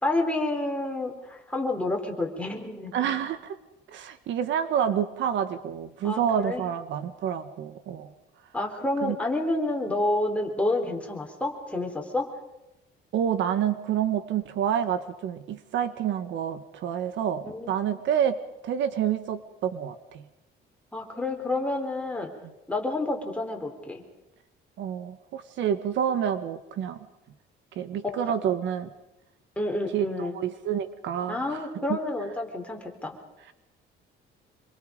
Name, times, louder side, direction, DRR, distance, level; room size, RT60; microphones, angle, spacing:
voice 1, 0.0-2.9 6.0-6.6 8.5-12.3 17.4-17.7 20.9-22.3 22.7-24.0 28.0-28.2 29.6-30.4 31.3-33.2, left 2 dB, 5° left, 1 dB, 3.8 m, -29 dB
voice 2, 2.9-3.6 3.9-8.1 9.0-9.1 13.1-18.4 18.6-20.2 24.8-27.0 27.7-28.9 29.9-32.0, right 9 dB, 65° right, 11 dB, 1.4 m, -28 dB
26.5 x 24.0 x 5.3 m, 0.93 s
cardioid pair, 150°, 20 cm